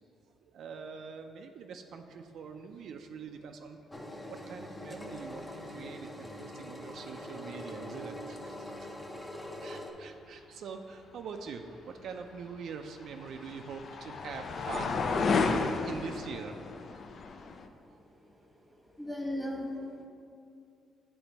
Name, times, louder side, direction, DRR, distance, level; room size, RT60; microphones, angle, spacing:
voice 1, 0.4-3.8 4.3-8.9 9.6-15.6 15.8-16.6 16.9-17.5 17.9-18.0, right 5 dB, 70° right, 5 dB, 0.4 m, -44 dB
Engine, 3.9-9.9, left 1 dB, 15° left, 0.7 m, -43 dB
sound 1, 12.4-17.7, left 4 dB, 55° left, 0.4 m, -32 dB
voice 2, 17.4-17.7 18.2-18.4 18.7-20.1, left 1 dB, 5° right, -1 dB, 1.2 m, -38 dB
8.8 x 3.3 x 4.0 m, 2.5 s
cardioid pair, 90°, 0 cm